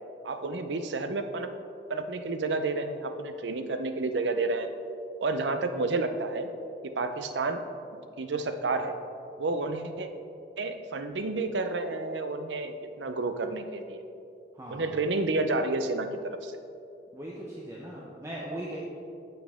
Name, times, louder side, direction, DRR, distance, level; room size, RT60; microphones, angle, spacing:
voice 1, 0.2-1.5 1.9-4.8 5.2-6.5 6.8-7.6 8.2-9.0 9.4-10.1 10.6-14.0 14.7-16.6, right 3 dB, 85° right, 8 dB, 0.6 m, -30 dB
voice 2, 14.5-14.9 17.1-18.8, right 1 dB, 15° right, -4 dB, 0.7 m, -39 dB
9.0 x 7.1 x 3.6 m, 2.6 s
head